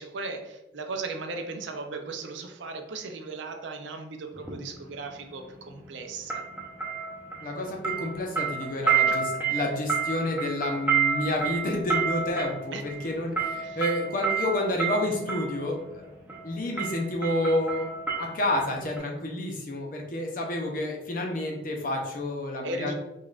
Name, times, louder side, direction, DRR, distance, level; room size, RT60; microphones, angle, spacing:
voice 1, 0.0-6.4 9.1-9.4 12.7-12.8 13.6-13.8 15.1-15.3 22.6-22.9, right 3 dB, 70° right, 5 dB, 0.5 m, -37 dB
sound 1, 4.4-4.6 6.3-7.6 7.8-15.5 16.3-16.5 16.8-18.7 19.0-19.1, right 6 dB, 10° right, 0.7 m, -29 dB
voice 2, 7.4-16.1 16.4-17.9 18.2-22.9, left 1 dB, 45° left, 1 dB, 0.6 m, -29 dB
5.1 x 2.4 x 2.4 m, 0.94 s
head